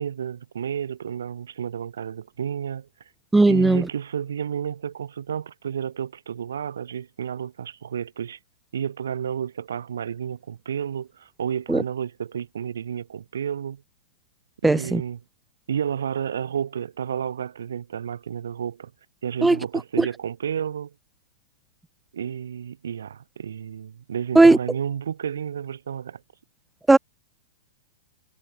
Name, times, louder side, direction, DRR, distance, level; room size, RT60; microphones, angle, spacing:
voice 1, 0.0-2.9 3.5-8.4 8.7-13.8 14.6-15.2 15.7-18.9 19.2-20.9 22.1-26.2, right 8 dB, 70° right, 1.0 m, -31 dB
voice 2, 3.3-3.9 11.7-11.8 14.6-15.0 19.4-19.6 20.0-20.1 24.3-24.6 26.9-27.0, right 2 dB, 5° right, 0.6 m, -16 dB
figure-of-eight pair, 105°, 0 cm